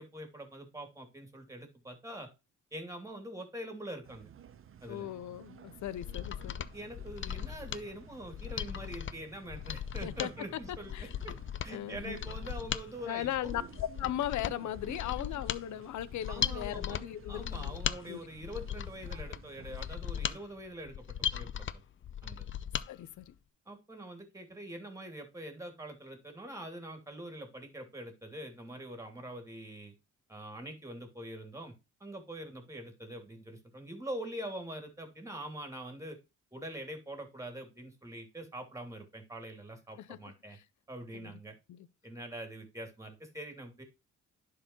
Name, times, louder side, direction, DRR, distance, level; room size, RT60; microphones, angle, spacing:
voice 1, 0.0-2.3 2.7-4.3 4.8-5.1 6.7-11.4 11.6-13.5 16.3-17.0 17.3-21.7 22.2-22.5 23.7-29.9 30.3-31.7 32.0-36.2 36.5-40.6 40.9-41.5 42.0-43.8, right 1 dB, 10° right, 2.8 m, -44 dB
sound 1, 4.0-20.4, right 8 dB, 45° right, 0.8 m, -54 dB
voice 2, 4.9-6.7 10.0-10.3 10.9-11.1 11.7-12.2 13.1-17.8 18.1-18.2 22.9-23.3 40.0-40.2 40.5-40.6 41.1-41.3 41.7-41.9, left 12 dB, 70° left, 0.8 m, -38 dB
Mechanisms, 5.8-22.9 23.2-23.3, left 9 dB, 40° left, 0.6 m, -38 dB
11.0 x 4.8 x 3.0 m
cardioid pair, 90°, 30 cm